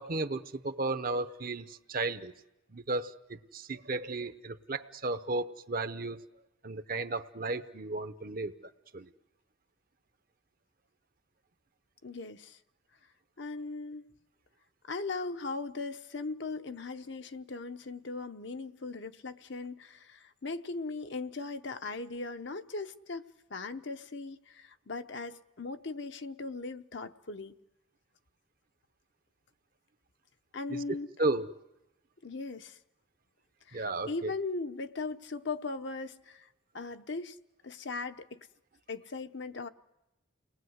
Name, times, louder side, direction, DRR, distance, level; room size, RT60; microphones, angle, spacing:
voice 1, 0.0-2.3 2.7-6.2 6.6-8.5 8.9-9.0 30.7-30.8 31.2-31.5 33.7-34.3, right 2 dB, 45° right, 0.8 m, -34 dB
voice 2, 12.0-12.6 13.4-14.0 14.9-27.5 30.5-31.1 32.2-32.8 33.7-36.5 36.7-37.4 37.6-38.5 38.9-39.7, left 3 dB, 60° left, 0.9 m, -39 dB
30.0 x 20.0 x 8.0 m
head